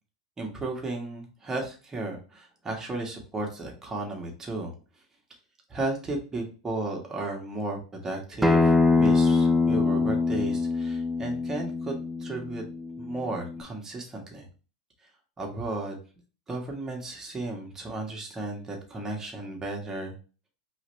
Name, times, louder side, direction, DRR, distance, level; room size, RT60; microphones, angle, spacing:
voice 1, 0.4-4.7 5.7-12.6 13.0-14.5 15.4-16.0 16.5-20.2, right 2 dB, 20° right, 0 dB, 1.6 m, -34 dB
Acoustic guitar, 8.4-13.6, left 3 dB, ahead, 0.5 m, -24 dB
4.6 x 3.3 x 3.3 m, 0.36 s
hypercardioid pair, 95°, 3 cm